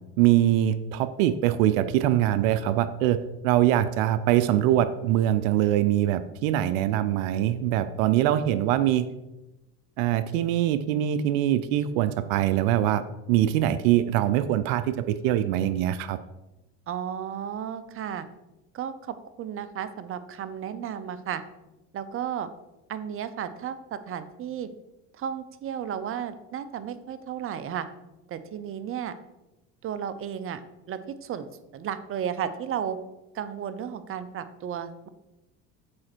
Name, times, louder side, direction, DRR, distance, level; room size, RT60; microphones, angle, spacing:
voice 1, 0.2-3.2 3.4-9.1 10.0-13.0 13.3-16.2, right 12 dB, 80° right, 12 dB, 0.5 m, -23 dB
voice 2, 16.9-18.3 18.7-21.4 21.9-22.5 22.9-24.7 25.1-27.9 28.3-29.1 29.8-30.6 30.9-31.5 31.7-33.0 33.3-35.1, right 8 dB, 35° right, 12 dB, 0.6 m, -33 dB
7.6 x 4.2 x 4.4 m, 0.99 s
supercardioid pair, 85°, 39 cm